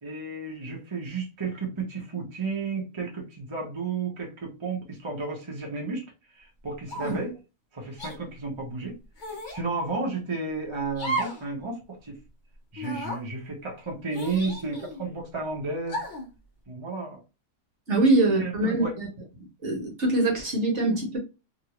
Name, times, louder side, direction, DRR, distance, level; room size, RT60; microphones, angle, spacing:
voice 1, 0.0-6.1 6.3-7.3 7.7-8.9 9.5-12.2 12.7-16.0 16.7-17.2 17.9-18.1 18.4-18.9, right 3 dB, 20° right, 0.9 m, -32 dB
sound 1, 6.9-7.3 8.0-8.2 9.2-9.6 10.9-11.5 11.8-11.9 12.8-13.2 14.1-15.0 15.9-16.3, right 1 dB, 35° left, 0.9 m, -34 dB
voice 2, 17.9-19.1 19.6-21.2, right 2 dB, 50° right, 1.4 m, -23 dB
3.0 x 2.7 x 2.9 m
omnidirectional pair, 1.7 m